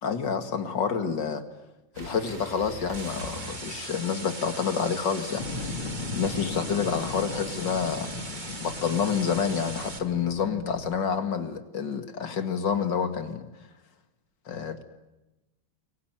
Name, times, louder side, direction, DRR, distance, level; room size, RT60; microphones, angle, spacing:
voice 1, 0.0-1.4 2.0-5.7 6.1-8.1 8.6-13.4 14.5-14.8, left 6 dB, 60° left, 8 dB, 2.8 m, -28 dB
sound 1, 1.9-4.4 5.8-7.1, right 1 dB, 40° right, 3.1 m, -44 dB
sound 2, 2.9-10.0, right 2 dB, 20° right, 2.2 m, -39 dB
sound 3, 5.4-11.0, left 4 dB, 90° left, 3.4 m, -37 dB
29.0 x 22.5 x 9.1 m, 1.0 s
omnidirectional pair, 2.3 m